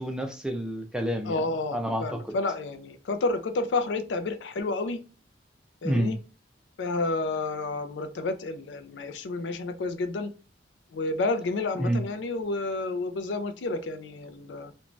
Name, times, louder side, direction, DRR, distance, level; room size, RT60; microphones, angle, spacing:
voice 1, 0.0-1.4 1.7-2.4 5.8-6.1 11.8-12.0, equal, 5° right, 0.3 m, -28 dB
voice 2, 1.2-5.0 5.8-6.2 6.8-10.3 10.9-14.7, left 3 dB, 85° left, 0.4 m, -30 dB
2.6 x 2.2 x 3.0 m
head